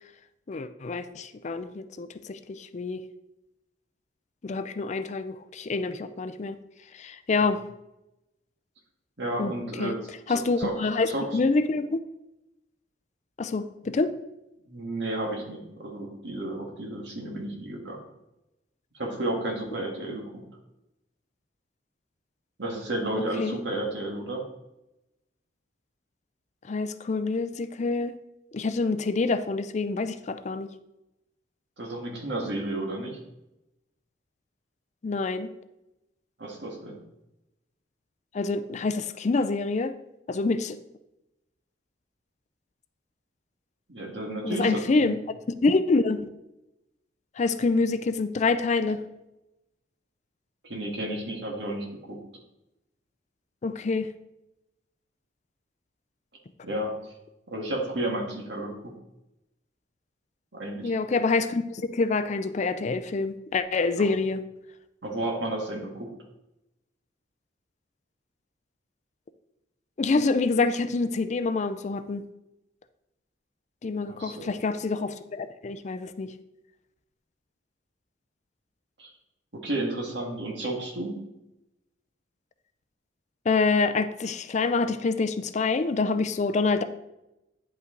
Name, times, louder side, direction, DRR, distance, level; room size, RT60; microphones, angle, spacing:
voice 1, 0.5-3.0 4.4-6.6 6.9-7.6 9.4-9.5 9.8-10.0 10.3-12.0 13.4-14.1 23.4-23.6 26.7-28.2 28.5-30.7 35.0-35.5 38.3-39.9 40.3-40.8 44.4-45.2 45.6-46.2 47.4-49.0 53.6-54.1 60.8-64.4 70.0-72.2 73.8-76.3 83.5-86.8, left 3 dB, 40° left, 11 dB, 0.4 m, -26 dB
voice 2, 9.2-10.0 10.3-10.7 11.1-11.4 14.7-18.0 18.9-20.4 22.6-24.4 31.8-33.2 36.4-37.0 43.9-45.2 50.6-52.2 56.6-56.9 57.5-58.9 60.5-60.9 64.0-64.1 65.0-66.1 74.0-74.6 79.0-79.1 79.5-81.2, right 1 dB, 65° right, 0 dB, 1.9 m, -32 dB
9.6 x 5.5 x 3.8 m, 0.91 s
head